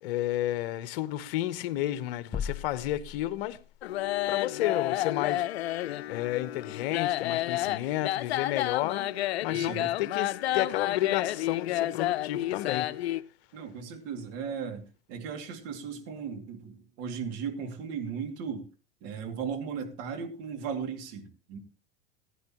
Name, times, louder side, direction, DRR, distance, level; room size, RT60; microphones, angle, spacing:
voice 1, 0.0-3.6 4.3-5.5 6.1-9.1 9.4-12.9, left 14 dB, 60° left, 1.0 m, -31 dB
sound 1, 2.3-3.9, left 7 dB, 15° left, 0.5 m, -37 dB
sound 2, 3.8-13.2, left 14 dB, 85° left, 0.6 m, -30 dB
voice 2, 9.5-9.9 13.5-18.7 19.0-21.6, right 6 dB, 50° right, 2.5 m, -37 dB
16.0 x 10.0 x 3.0 m
supercardioid pair, 125°, 31 cm